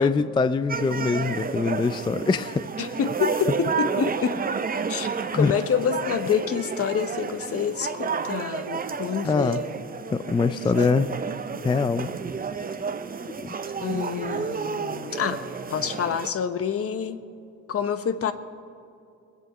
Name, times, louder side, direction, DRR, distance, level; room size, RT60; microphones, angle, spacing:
voice 1, 0.0-2.7 5.3-5.5 9.2-9.6 10.1-11.1 11.6-12.1 13.4-13.5 13.9-14.0, left 4 dB, 15° left, 13 dB, 0.3 m, -23 dB
sound 1, 0.7-16.3, right 5 dB, 30° right, 0.7 m, -31 dB
voice 2, 2.8-4.4 4.9-9.7 13.8-15.4 15.7-17.2 17.7-18.3, left 7 dB, 50° left, 10 dB, 1.0 m, -27 dB
21.5 x 8.0 x 6.1 m, 2.6 s
cardioid pair, 90°, 30 cm